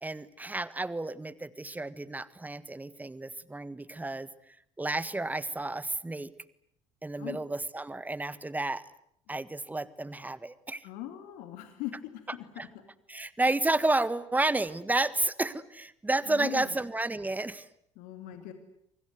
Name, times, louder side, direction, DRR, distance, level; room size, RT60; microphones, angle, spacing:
voice 1, 0.0-4.3 4.8-6.3 7.0-8.9 9.3-10.8 12.6-12.7 13.1-17.7, right 2 dB, 10° right, 16 dB, 1.6 m, -31 dB
voice 2, 10.8-11.9 16.3-16.8 18.0-18.5, left 14 dB, 60° left, 7 dB, 2.6 m, -40 dB
29.0 x 25.0 x 8.1 m, 0.72 s
figure-of-eight pair, 60°, 16 cm